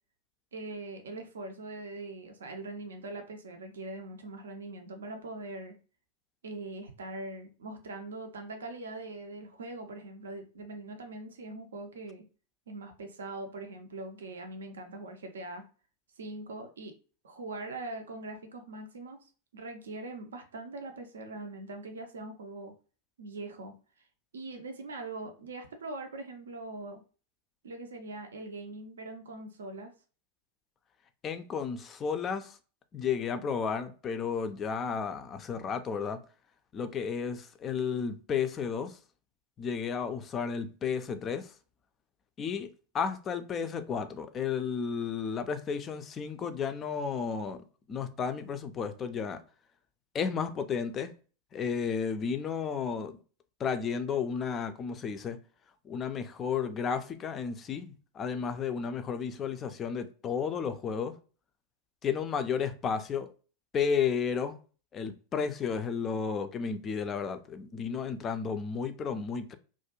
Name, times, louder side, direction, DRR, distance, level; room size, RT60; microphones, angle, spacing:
voice 1, 0.5-5.8 6.4-12.3 12.7-15.7 16.2-16.9 17.2-22.7 23.2-23.7 24.3-27.0 27.6-29.9, right 2 dB, 65° right, 0.4 m, -42 dB
voice 2, 31.2-32.6 32.9-36.2 36.7-39.0 39.6-41.5 42.4-42.7 42.9-47.6 47.9-49.4 50.1-51.1 51.5-53.2 53.6-55.4 55.8-61.1 62.0-63.3 63.7-64.6 64.9-69.5, left 6 dB, 25° left, 0.3 m, -32 dB
2.4 x 2.1 x 2.9 m
figure-of-eight pair, 90°, 0 cm